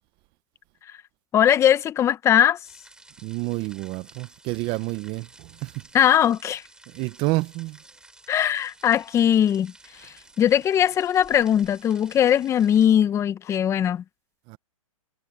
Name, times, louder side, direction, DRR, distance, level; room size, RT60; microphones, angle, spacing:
voice 1, 1.3-2.6 5.9-6.6 8.3-9.7 10.0-14.0, left 10 dB, 15° left, 0.9 m, -20 dB
sound 1, 2.6-12.9, right 2 dB, 5° right, 7.9 m, -52 dB
voice 2, 3.2-5.7 6.9-7.8 14.5-14.6, right 22 dB, 30° right, 0.8 m, -29 dB
hypercardioid pair, 140°, 18 cm